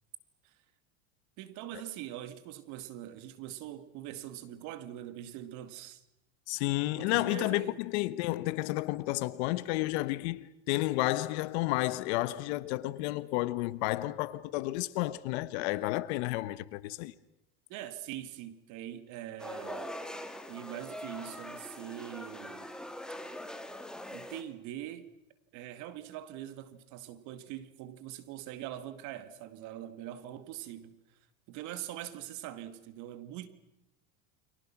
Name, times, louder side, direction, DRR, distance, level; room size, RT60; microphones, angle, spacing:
voice 1, 1.4-6.0 6.9-7.8 17.7-20.0 20.5-22.7 24.1-25.1 25.5-31.0 31.5-33.5, right 12 dB, 55° right, 2.2 m, -43 dB
voice 2, 6.5-17.1, left 18 dB, 65° left, 1.3 m, -31 dB
sound 1, 19.4-24.4, left 1 dB, ahead, 2.2 m, -42 dB
30.0 x 24.0 x 6.1 m
supercardioid pair, 130°, 35 cm